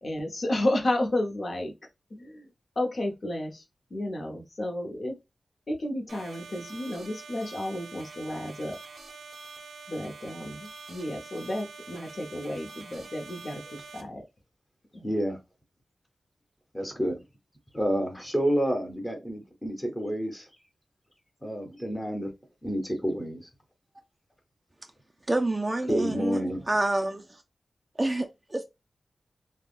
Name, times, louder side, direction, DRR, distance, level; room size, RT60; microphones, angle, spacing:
voice 1, 0.0-1.7 2.1-2.5 2.8-3.6 3.9-5.2 5.7-8.8 9.9-14.2 14.9-15.1, left 1 dB, 55° left, 0.8 m, -32 dB
sound 1, 6.1-14.0, right 4 dB, 90° right, 0.6 m, -46 dB
voice 2, 15.0-15.4 16.7-17.2 17.7-20.5 21.4-22.3 22.6-23.5 25.9-26.6, equal, 15° left, 0.9 m, -29 dB
voice 3, 25.3-26.4 26.7-27.4 28.0-28.6, right 2 dB, 20° right, 0.3 m, -28 dB
3.4 x 2.0 x 2.4 m
wide cardioid pair, 80°, 0 cm